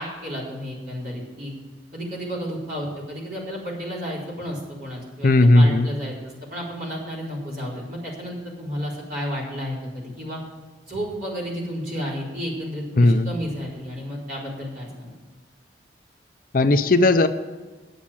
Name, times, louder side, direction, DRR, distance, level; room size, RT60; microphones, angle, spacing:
voice 1, 0.0-1.5 1.9-10.4 10.8-15.1, equal, 50° right, -5 dB, 4.3 m, -32 dB
voice 2, 5.2-5.9 13.0-13.3 16.5-17.3, left 2 dB, 50° left, 10 dB, 0.5 m, -16 dB
10.0 x 7.3 x 8.7 m, 1.3 s
head